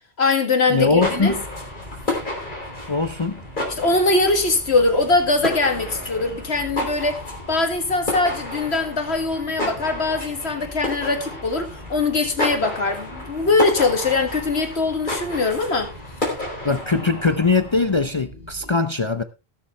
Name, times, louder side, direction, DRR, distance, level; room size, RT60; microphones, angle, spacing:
voice 1, 0.2-1.4 3.7-7.2 7.5-15.9 16.6-16.7, left 3 dB, 90° left, 2.2 m, -21 dB
sound 1, 0.7-18.1, left 1 dB, 50° left, 4.3 m, -31 dB
voice 2, 0.7-1.4 2.9-3.4 16.6-19.2, left 3 dB, 30° left, 0.7 m, -21 dB
sound 2, 0.7-18.7, equal, 50° right, 4.1 m, -43 dB
19.0 x 7.2 x 3.3 m
omnidirectional pair, 1.1 m